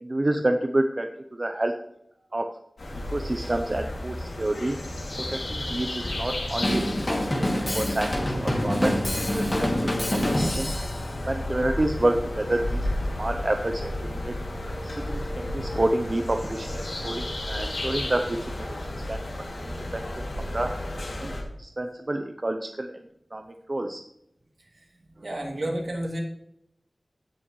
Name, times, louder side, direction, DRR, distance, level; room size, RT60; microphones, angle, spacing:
voice 1, 0.0-1.7 2.3-2.6 2.9-4.8 5.3-9.7 10.1-10.7 11.3-12.9 13.2-14.4 14.8-18.8 19.1-20.0 20.4-20.8 21.2-21.3 21.6-22.9 23.3-24.0, right 1 dB, 40° right, 5 dB, 0.7 m, -29 dB
sound 1, 2.8-21.4, left 1 dB, 90° left, 2.5 m, -33 dB
Drum kit / Drum, 6.6-11.0, left 1 dB, 35° left, 2.4 m, -26 dB
voice 2, 25.2-26.2, right 1 dB, 65° right, -1 dB, 2.7 m, -32 dB
16.5 x 6.3 x 3.2 m, 0.78 s
wide cardioid pair, 75°, 0 cm